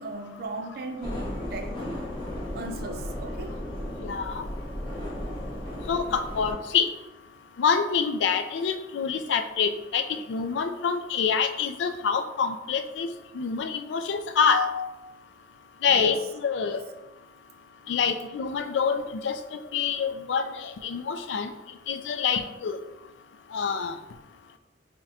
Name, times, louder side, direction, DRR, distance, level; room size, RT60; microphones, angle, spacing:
voice 1, 0.0-1.8 2.5-3.6 5.4-5.5 15.8-16.2 17.8-18.0, right 2 dB, 60° right, 0.4 m, -38 dB
sound 1, 1.0-6.5, left 1 dB, 30° left, 0.9 m, -35 dB
voice 2, 4.0-4.4 5.9-6.9 7.6-13.1 13.3-14.9 15.8-16.8 17.9-21.5 21.9-22.8 23.5-24.0, left 6 dB, 85° left, 0.3 m, -26 dB
3.6 x 2.1 x 4.1 m
head